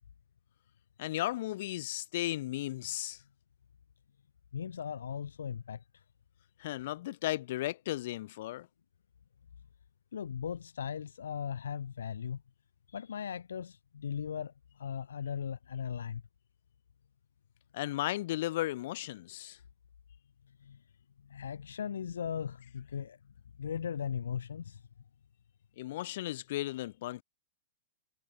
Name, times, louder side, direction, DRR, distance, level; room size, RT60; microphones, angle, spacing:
voice 1, 1.0-3.2 6.6-8.7 17.7-19.6 25.8-27.2, left 16 dB, 60° left, 5.5 m, -35 dB
voice 2, 4.5-5.8 10.1-12.4 12.9-16.2 20.6-20.8 21.3-23.2 23.6-24.8, left 8 dB, 75° left, 4.3 m, -38 dB
hypercardioid pair, 105°, 0 cm